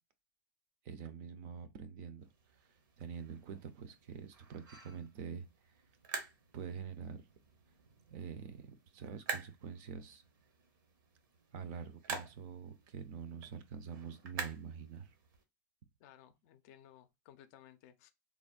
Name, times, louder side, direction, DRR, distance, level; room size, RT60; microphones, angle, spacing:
voice 1, 0.8-2.3 3.0-5.5 6.5-7.2 8.1-8.6 8.9-10.2 11.5-15.1, right 6 dB, 45° right, 0.5 m, -45 dB
sound 1, 2.2-15.4, right 5 dB, 75° right, 0.9 m, -48 dB
voice 2, 16.0-18.1, left 11 dB, 50° left, 0.4 m, -59 dB
3.4 x 2.1 x 2.3 m
supercardioid pair, 150°, 11 cm